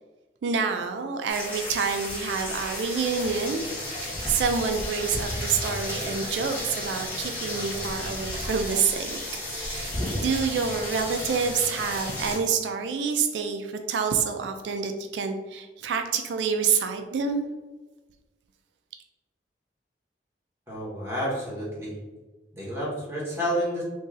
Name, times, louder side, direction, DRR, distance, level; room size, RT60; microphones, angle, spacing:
voice 1, 0.4-9.2 9.5-17.4, right 6 dB, 85° right, 6 dB, 0.3 m, -27 dB
sound 1, 1.3-12.4, left 1 dB, 10° left, 1.4 m, -33 dB
voice 2, 20.7-21.9 22.5-23.8, equal, 15° right, -7 dB, 1.2 m, -30 dB
3.0 x 2.6 x 3.7 m, 1.2 s
head